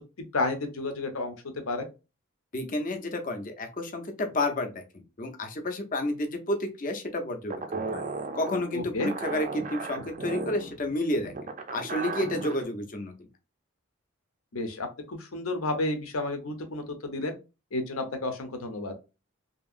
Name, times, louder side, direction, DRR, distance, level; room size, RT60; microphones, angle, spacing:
voice 1, 0.3-1.3 1.7-1.9 8.7-9.1 14.5-17.3 17.7-18.9, left 2 dB, 80° left, 6 dB, 0.7 m, -31 dB
voice 2, 2.5-4.7 5.2-8.1 8.3-11.3 11.7-13.1, left 1 dB, 40° left, 6 dB, 0.6 m, -30 dB
sound 1, 7.5-12.6, right 3 dB, 35° right, 0.4 m, -35 dB
2.8 x 2.7 x 2.4 m, 0.28 s
head